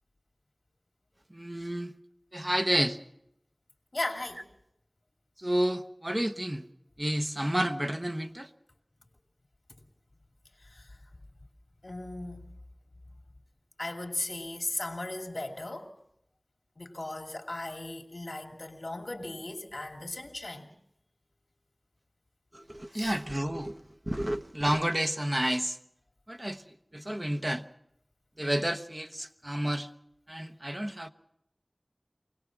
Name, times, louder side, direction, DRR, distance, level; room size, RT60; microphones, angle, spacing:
voice 1, 1.3-1.9 2.3-3.0 5.4-6.6 7.0-8.5 22.5-25.8 26.3-27.6 28.4-29.9 30.3-31.1, right 1 dB, 30° right, 0.9 m, -30 dB
voice 2, 3.9-4.4 10.7-10.9 11.8-12.4 13.8-15.9 16.8-20.7 22.9-23.1, left 2 dB, 80° left, 2.5 m, -37 dB
24.5 x 18.5 x 6.0 m
wide cardioid pair, 40°, 0 cm